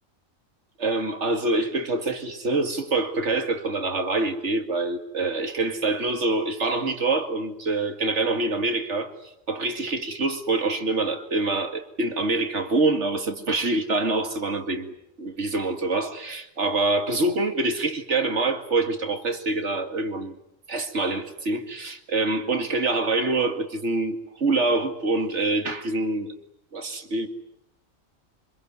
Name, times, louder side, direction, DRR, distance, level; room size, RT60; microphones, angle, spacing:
voice 1, 0.8-9.1 9.5-20.3 20.7-26.3 26.7-27.3, right 2 dB, 60° right, 2.5 m, -25 dB
25.5 x 22.0 x 9.5 m
omnidirectional pair, 1.4 m